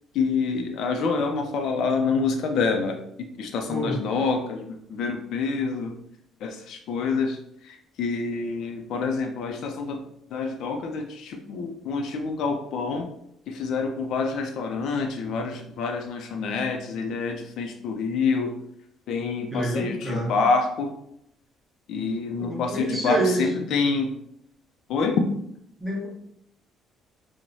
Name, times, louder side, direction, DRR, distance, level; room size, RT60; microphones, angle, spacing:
voice 1, 0.1-5.9 6.4-10.0 10.3-13.1 13.5-18.5 19.1-20.9 21.9-24.1 24.9-25.3, left 4 dB, 60° left, 4 dB, 0.4 m, -27 dB
voice 2, 3.7-4.0 19.5-20.3 22.4-23.6 25.8-26.1, right 1 dB, 5° right, -3 dB, 0.8 m, -27 dB
4.5 x 2.1 x 2.6 m, 0.73 s
cardioid pair, 175°, 0 cm